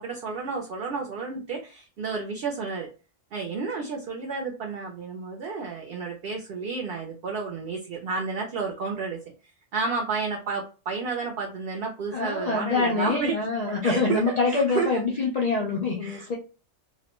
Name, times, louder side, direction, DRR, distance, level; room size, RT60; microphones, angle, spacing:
voice 1, 0.0-2.9 3.3-9.2 9.7-13.4 13.8-15.0 16.0-16.3, right 4 dB, 60° right, 1 dB, 0.6 m, -31 dB
voice 2, 12.1-16.4, left 3 dB, 65° left, -2 dB, 0.4 m, -25 dB
2.5 x 2.1 x 2.9 m, 0.33 s
omnidirectional pair, 1.3 m